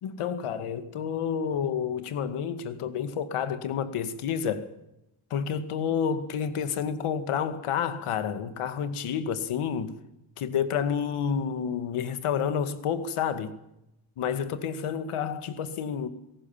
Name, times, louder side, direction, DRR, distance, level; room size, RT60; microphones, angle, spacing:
voice 1, 0.0-4.7 5.3-9.9 10.4-13.6 14.2-16.1, left 7 dB, 85° left, 2.3 m, -29 dB
27.0 x 18.0 x 7.3 m
cardioid pair, 120°, 49 cm